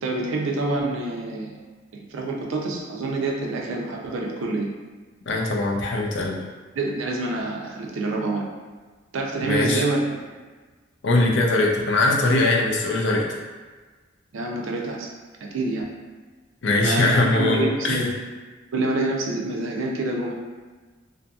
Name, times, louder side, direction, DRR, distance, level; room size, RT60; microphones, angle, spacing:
voice 1, 0.0-1.6 1.9-4.7 6.7-8.5 9.1-10.0 14.3-15.1 15.5-15.9 16.8-18.1 18.7-20.3, right 2 dB, 80° right, -1 dB, 0.4 m, -27 dB
voice 2, 5.3-6.4 9.4-9.8 11.0-13.3 16.6-18.1, left 2 dB, 60° left, -1 dB, 0.4 m, -21 dB
2.7 x 2.5 x 2.3 m, 1.4 s
head